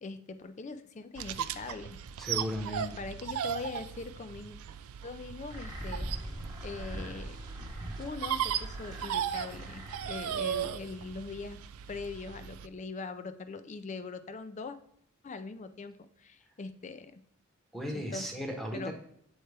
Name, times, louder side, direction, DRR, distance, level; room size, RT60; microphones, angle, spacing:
voice 1, 0.0-2.0 2.6-4.6 5.0-6.1 6.6-7.4 8.0-11.6 11.9-14.8 15.2-17.2 17.9-18.3 18.7-18.9, left 4 dB, 35° left, 11 dB, 0.4 m, -41 dB
sound 1, 1.2-12.7, right 9 dB, 75° right, 0.3 m, -37 dB
voice 2, 2.2-2.9 17.7-18.9, equal, ahead, 2 dB, 0.9 m, -35 dB
sound 2, 5.5-10.7, right 1 dB, 20° right, 0.9 m, -42 dB
8.0 x 4.4 x 3.3 m, 0.69 s
head